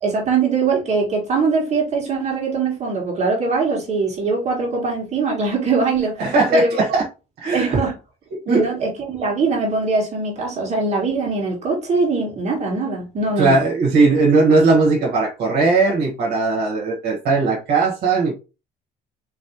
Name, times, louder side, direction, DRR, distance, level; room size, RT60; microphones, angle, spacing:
voice 1, 0.0-6.2 6.5-7.0 7.5-7.9 8.4-13.6, right 4 dB, 40° right, 1.7 m, -22 dB
voice 2, 6.2-7.1 7.4-7.8 8.3-8.7 13.4-18.3, right 3 dB, 75° right, 1.5 m, -18 dB
4.2 x 3.1 x 2.8 m
cardioid pair, 110°, 17 cm